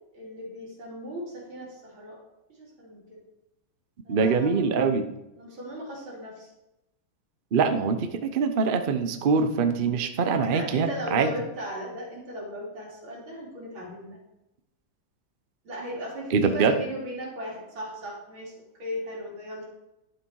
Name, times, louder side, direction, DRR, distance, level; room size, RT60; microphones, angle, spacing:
voice 1, 0.1-2.2 2.5-3.2 4.1-4.8 5.4-6.5 10.3-14.2 15.7-19.7, equal, 90° right, -3 dB, 3.5 m, -37 dB
voice 2, 4.1-5.1 7.5-11.3 16.3-16.7, right 5 dB, 65° right, 8 dB, 0.5 m, -24 dB
11.0 x 6.6 x 4.7 m, 0.91 s
omnidirectional pair, 2.1 m